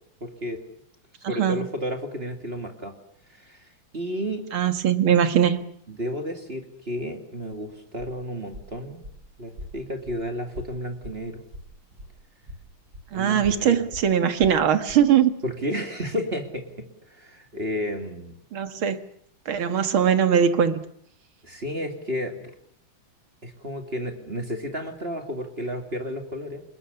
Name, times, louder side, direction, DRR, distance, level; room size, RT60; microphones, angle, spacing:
voice 1, 0.2-0.6 1.3-2.9 3.3-3.7 3.9-4.4 5.9-9.0 9.4-11.4 13.1-13.9 15.4-18.4 21.4-22.5 23.4-26.6, equal, 30° right, 5 dB, 2.8 m, -32 dB
voice 2, 1.2-1.6 4.5-5.6 13.1-15.3 18.5-19.0 19.5-20.8, right 8 dB, 80° right, 10 dB, 2.5 m, -21 dB
Walk footsteps, 7.4-12.2 12.4-15.1, left 1 dB, 50° right, 8.3 m, -43 dB
30.0 x 20.0 x 7.0 m, 0.67 s
omnidirectional pair, 2.2 m